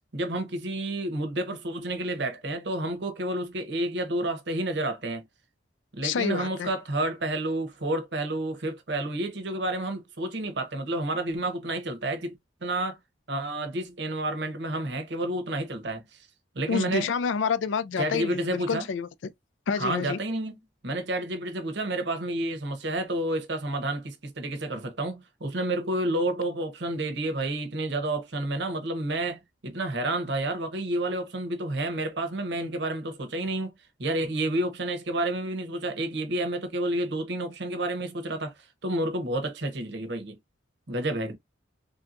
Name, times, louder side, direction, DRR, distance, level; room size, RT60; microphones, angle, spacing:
voice 1, 0.1-5.2 5.9-12.3 12.6-13.0 13.3-16.2 16.5-17.1 18.0-18.9 19.7-33.7 34.0-40.4 40.9-41.4, right 1 dB, 65° right, 0.8 m, -30 dB
voice 2, 6.0-6.7 16.7-19.1 19.7-20.2, left 6 dB, 80° left, 0.4 m, -28 dB
3.4 x 2.8 x 2.4 m
head